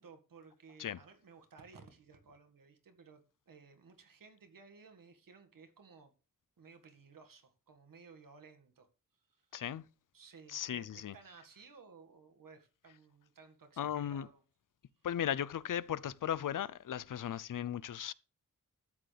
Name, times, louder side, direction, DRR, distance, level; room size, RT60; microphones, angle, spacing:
voice 1, 0.0-6.1 6.6-8.9 9.1-9.5 10.1-14.4 15.0-15.1, right 5 dB, 80° right, 2.0 m, -58 dB
voice 2, 9.5-9.8 10.5-11.1 13.8-14.3 15.0-18.1, left 10 dB, 75° left, 0.6 m, -36 dB
13.0 x 9.2 x 3.4 m
wide cardioid pair, 155°, 33 cm